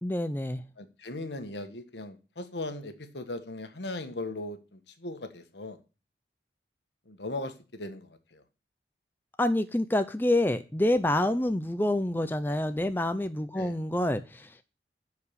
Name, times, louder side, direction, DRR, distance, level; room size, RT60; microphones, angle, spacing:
voice 1, 0.0-0.6 9.4-14.6, left 1 dB, 10° left, 10 dB, 0.5 m, -27 dB
voice 2, 0.8-5.8 7.1-8.4 13.6-13.8, left 2 dB, 80° left, 9 dB, 1.4 m, -38 dB
10.5 x 4.8 x 6.8 m, 0.32 s
head